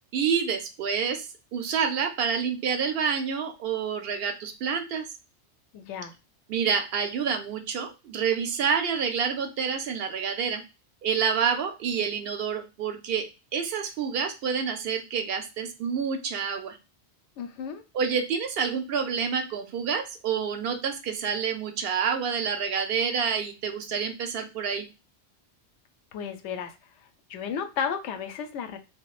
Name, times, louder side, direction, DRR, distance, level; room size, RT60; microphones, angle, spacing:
voice 1, 0.1-5.1 6.5-10.6 11.0-16.8 17.9-24.9, right 6 dB, 65° right, 7 dB, 0.7 m, -28 dB
voice 2, 5.7-6.1 17.4-17.8 26.1-26.8 27.3-28.8, left 7 dB, 90° left, 7 dB, 0.9 m, -33 dB
3.6 x 2.0 x 2.4 m, 0.28 s
omnidirectional pair, 1.2 m